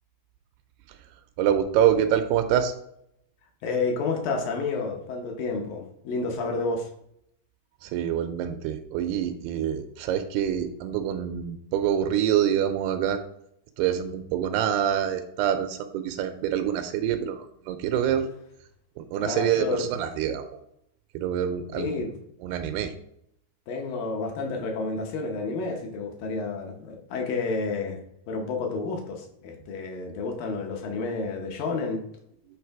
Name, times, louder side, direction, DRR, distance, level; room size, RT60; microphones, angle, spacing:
voice 1, 1.4-2.7 7.8-13.2 13.8-18.3 19.0-20.6 21.2-21.9 22.4-22.9, right 9 dB, 85° right, 8 dB, 2.5 m, -26 dB
voice 2, 3.6-6.9 19.2-19.9 21.7-22.1 23.7-28.0 28.3-32.0, left 3 dB, 70° left, 2 dB, 2.3 m, -30 dB
8.7 x 3.3 x 4.6 m, 0.75 s
omnidirectional pair, 4.6 m